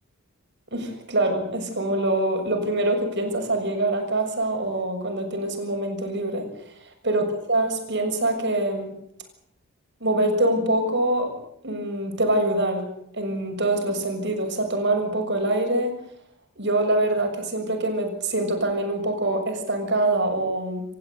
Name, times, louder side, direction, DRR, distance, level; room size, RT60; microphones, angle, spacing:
voice 1, 0.7-6.5 7.0-8.9 10.0-11.3 11.6-12.9 13.1-15.9 16.6-20.8, right 1 dB, 55° right, 5 dB, 6.5 m, -24 dB
28.0 x 15.0 x 8.2 m, 0.74 s
head